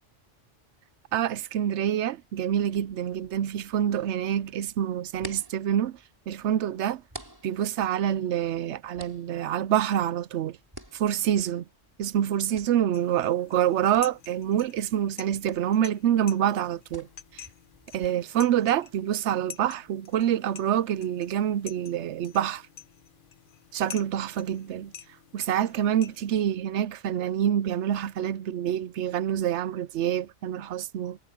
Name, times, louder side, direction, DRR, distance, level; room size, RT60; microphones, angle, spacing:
voice 1, 1.1-6.0 6.3-7.0 7.4-10.6 10.9-11.6 12.0-17.1 17.3-17.4 17.9-22.6 23.7-24.9 25.3-31.2, right 10 dB, 75° right, 0.9 m, -26 dB
sound 1, 2.6-18.1, right 1 dB, 15° right, 4.8 m, -51 dB
sound 2, 12.9-26.5, left 8 dB, 50° left, 0.8 m, -48 dB
omnidirectional pair, 1.2 m